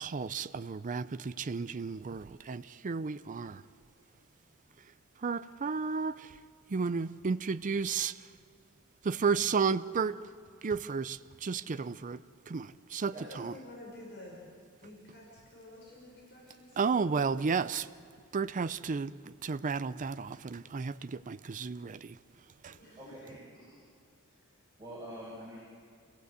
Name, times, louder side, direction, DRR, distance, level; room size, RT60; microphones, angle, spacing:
voice 1, 0.0-3.6 5.2-6.3 6.7-8.2 9.0-10.2 10.6-12.2 12.5-13.5 16.8-17.9 18.3-22.2 22.6-22.7, right 5 dB, 35° right, 13 dB, 0.5 m, -33 dB
voice 2, 13.1-14.4 14.8-17.0 22.8-23.0, left 1 dB, 50° left, -4 dB, 5.4 m, -50 dB
voice 3, 23.0-23.8 24.3-24.4 24.8-25.6, right 1 dB, 15° right, -7 dB, 5.8 m, -46 dB
27.0 x 16.5 x 8.1 m, 2.2 s
head